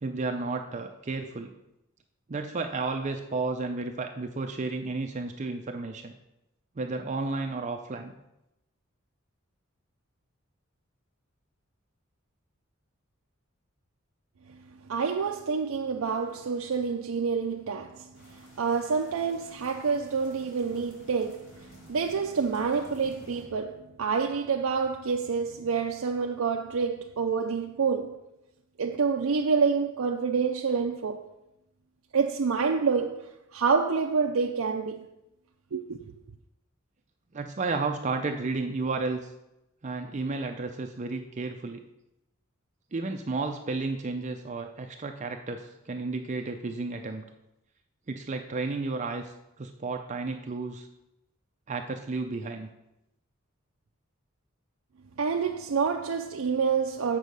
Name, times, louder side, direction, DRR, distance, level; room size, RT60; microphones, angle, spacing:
voice 1, 0.0-1.5 2.3-6.1 6.8-8.1 37.3-39.3 39.8-41.8 42.9-47.2 48.1-49.3 49.6-50.9 51.7-52.7, right 3 dB, 35° right, 0.5 m, -32 dB
voice 2, 14.9-28.2 28.8-31.2 32.1-35.1 35.7-36.1 55.2-57.2, right 5 dB, 90° right, 0.5 m, -28 dB
sound 1, 18.1-23.4, equal, 70° left, 2.7 m, -53 dB
7.4 x 6.3 x 5.3 m
head